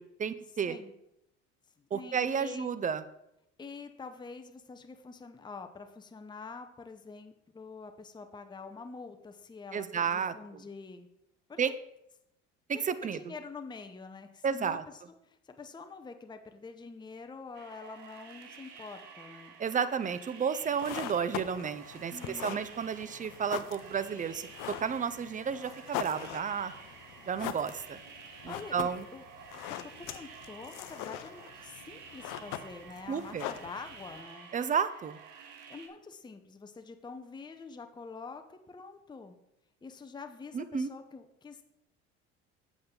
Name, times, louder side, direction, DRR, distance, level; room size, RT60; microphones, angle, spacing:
voice 1, 0.2-0.8 1.9-3.0 9.7-10.3 11.6-11.7 12.7-13.2 14.4-14.8 19.6-26.7 27.3-28.0 28.4-29.1 33.1-33.5 34.5-35.2 40.5-40.9, right 7 dB, 20° right, 14 dB, 0.5 m, -32 dB
voice 2, 1.8-2.7 3.6-11.1 11.5-11.6 13.0-19.6 22.1-22.8 28.5-29.2 29.7-34.5 35.7-39.4 39.8-41.6, left 4 dB, 10° left, 7 dB, 0.7 m, -46 dB
sound 1, 17.5-35.9, right 6 dB, 65° right, 1.2 m, -51 dB
sound 2, 20.6-34.2, left 12 dB, 60° left, 0.7 m, -42 dB
7.8 x 7.0 x 3.8 m, 0.84 s
hypercardioid pair, 65°, 35 cm